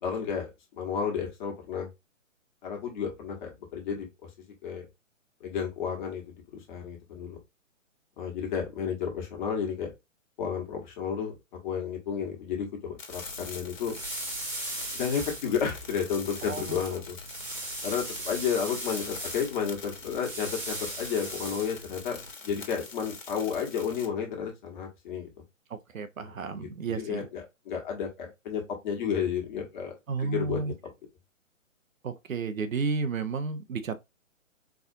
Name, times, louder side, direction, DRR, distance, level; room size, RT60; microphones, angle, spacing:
voice 1, 0.0-1.9 2.6-4.3 4.6-4.9 5.4-7.4 8.2-9.9 10.4-14.0 14.9-17.2 17.8-22.2 22.4-25.3 26.2-29.9 30.2-30.6, left 7 dB, 35° left, 1.4 m, -32 dB
sound 1, 13.0-24.1, left 4 dB, 75° left, 1.4 m, -44 dB
sound 2, 13.1-22.3, right 2 dB, 5° right, 0.6 m, -39 dB
voice 2, 16.4-16.8 25.7-27.3 30.1-30.7 32.0-34.0, right 4 dB, 80° right, 0.8 m, -32 dB
4.7 x 2.5 x 2.6 m
figure-of-eight pair, 135°, 40 cm